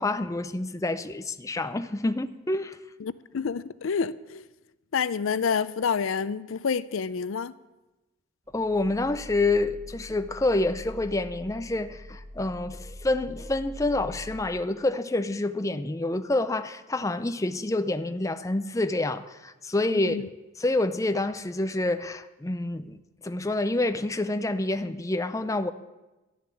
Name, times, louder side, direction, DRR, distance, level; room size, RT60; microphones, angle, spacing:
voice 1, 0.0-2.8 8.5-20.3 20.6-23.0 23.2-25.7, left 2 dB, 15° left, 0.5 m, -27 dB
voice 2, 3.0-4.5 4.9-7.5 19.9-20.3, left 6 dB, 80° left, 0.5 m, -28 dB
sound 1, 8.5-14.4, equal, 30° right, 1.3 m, -43 dB
12.5 x 7.1 x 9.8 m
head